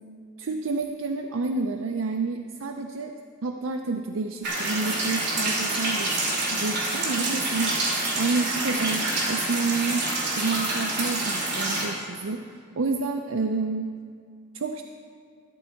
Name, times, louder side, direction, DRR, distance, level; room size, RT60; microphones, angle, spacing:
voice 1, 0.4-3.1 3.4-6.1 6.5-10.1 10.4-13.9 14.5-14.8, right 3 dB, 75° right, 4 dB, 0.5 m, -29 dB
sound 1, 4.4-11.8, right 2 dB, 55° right, 2.8 m, -27 dB
13.5 x 8.0 x 4.5 m, 2.1 s
head